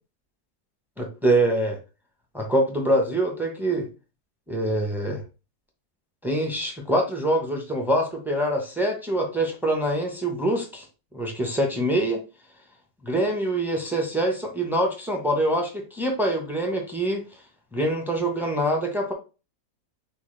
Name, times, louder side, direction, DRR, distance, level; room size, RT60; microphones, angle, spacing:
voice 1, 1.0-1.8 2.3-3.9 4.5-5.2 6.2-10.8 11.1-12.2 13.0-17.2 17.7-19.1, right 1 dB, ahead, 2 dB, 0.5 m, -24 dB
6.7 x 2.3 x 3.2 m, 0.32 s
omnidirectional pair, 1.7 m